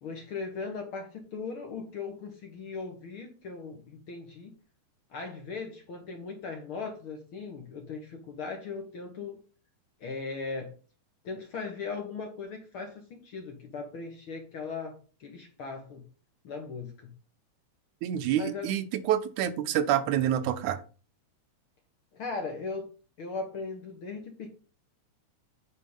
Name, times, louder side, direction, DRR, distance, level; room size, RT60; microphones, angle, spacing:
voice 1, 0.0-4.5 5.1-9.4 10.0-10.7 11.2-16.0 16.4-17.1 18.3-18.7 22.1-22.9 23.2-24.5, left 4 dB, 55° left, 4 dB, 1.6 m, -38 dB
voice 2, 18.0-20.8, right 11 dB, 80° right, 11 dB, 2.1 m, -27 dB
9.1 x 4.4 x 5.4 m, 0.37 s
omnidirectional pair, 3.6 m